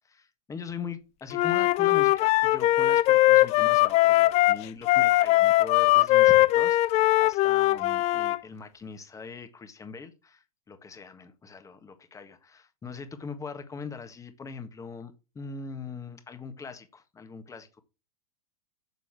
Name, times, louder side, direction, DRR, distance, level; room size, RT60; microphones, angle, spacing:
voice 1, 0.1-17.8, left 5 dB, 15° left, 1.6 m, -41 dB
Wind instrument woodwind instrument, 1.3-8.4, left 17 dB, 35° left, 0.5 m, -21 dB
6.9 x 6.4 x 6.1 m
hypercardioid pair, 115°, 20 cm